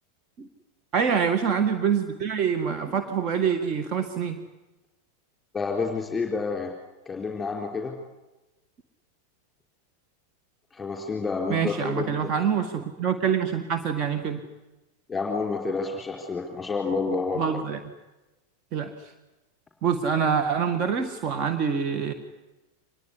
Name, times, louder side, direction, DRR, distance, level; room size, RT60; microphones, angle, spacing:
voice 1, 0.9-4.4 11.5-14.4 17.4-17.8 18.7-18.9 19.8-22.1, right 7 dB, 35° right, 7 dB, 1.8 m, -25 dB
voice 2, 5.5-6.7 7.1-8.0 10.7-12.5 15.1-17.4, left 4 dB, 15° left, 1 dB, 4.0 m, -29 dB
25.5 x 21.0 x 9.9 m, 1.1 s
figure-of-eight pair, 90°, 0 cm